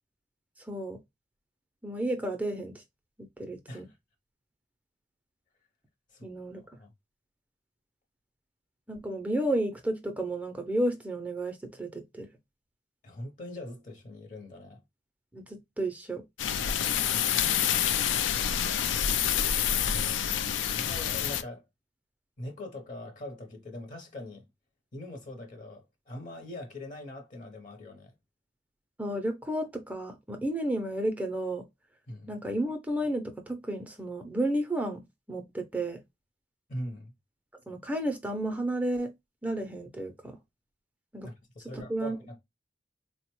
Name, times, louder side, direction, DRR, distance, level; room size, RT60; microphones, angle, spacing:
voice 1, 0.6-1.0 1.8-2.8 3.4-3.9 6.2-6.8 8.9-12.3 15.3-16.2 29.0-31.6 32.3-36.0 37.7-39.1 39.4-40.4 41.1-41.3 41.7-42.2, right 1 dB, 10° right, 0.4 m, -32 dB
voice 2, 13.0-14.8 19.8-20.3 20.7-21.6 22.4-24.4 24.9-28.1 32.1-32.3 36.7-37.1 41.2-42.4, left 1 dB, 45° left, 0.7 m, -42 dB
sound 1, 16.4-21.4, left 9 dB, 90° left, 0.4 m, -27 dB
3.7 x 2.1 x 2.9 m
head